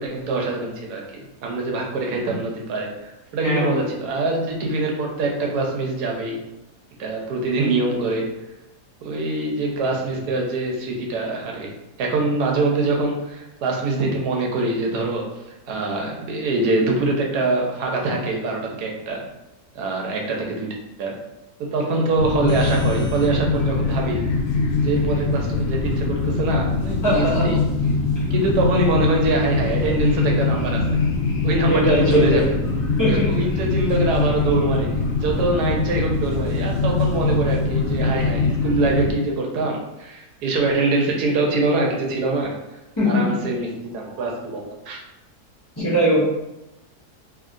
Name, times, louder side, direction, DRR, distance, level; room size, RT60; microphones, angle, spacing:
voice 1, 0.0-6.4 7.0-8.3 9.0-11.7 12.0-15.3 15.7-19.2 19.7-20.7 21.0-21.2 21.6-24.3 24.8-27.6 28.3-31.0 31.4-32.6 33.1-34.9 35.2-42.5 43.0-45.0, right 2 dB, 85° right, 0 dB, 1.2 m, -24 dB
voice 2, 3.4-3.8 27.0-27.5 31.7-32.5 33.0-33.3 43.0-43.3 45.8-46.2, equal, 20° left, -10 dB, 0.5 m, -20 dB
sound 1, 22.2-39.1, left 3 dB, 80° left, 1.1 m, -22 dB
3.0 x 2.8 x 2.5 m, 0.94 s
omnidirectional pair, 1.7 m